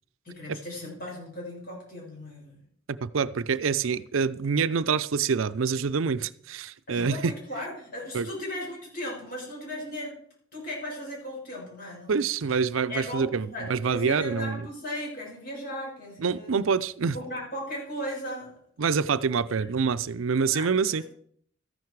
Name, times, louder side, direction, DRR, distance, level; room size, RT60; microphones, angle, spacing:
voice 1, 0.2-2.6 6.9-10.2 10.5-12.3 12.9-16.5 17.1-18.5 19.5-19.6 20.4-21.0, left 1 dB, 45° left, 6.2 m, -37 dB
voice 2, 2.9-7.3 8.1-8.3 12.1-14.6 16.2-17.1 18.8-21.0, right 5 dB, 80° right, 0.5 m, -26 dB
14.0 x 10.5 x 4.7 m
head